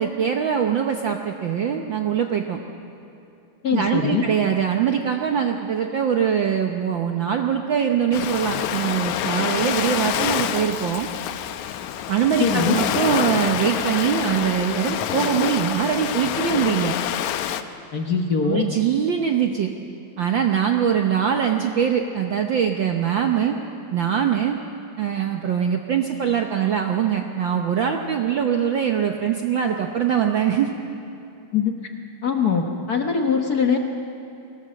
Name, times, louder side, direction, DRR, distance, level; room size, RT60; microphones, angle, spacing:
voice 1, 0.0-2.6 3.7-11.1 12.1-17.0 18.4-19.7 20.2-23.5 23.9-24.6 25.0-30.7, right 8 dB, 75° right, 4 dB, 1.1 m, -22 dB
voice 2, 3.6-4.3 12.4-12.8 17.9-18.6 31.5-31.7 32.2-33.8, left 6 dB, 60° left, 4 dB, 1.0 m, -22 dB
Ocean, 8.1-17.6, left 10 dB, 85° left, 2.2 m, -26 dB
23.0 x 17.5 x 7.5 m, 2.8 s
omnidirectional pair, 3.3 m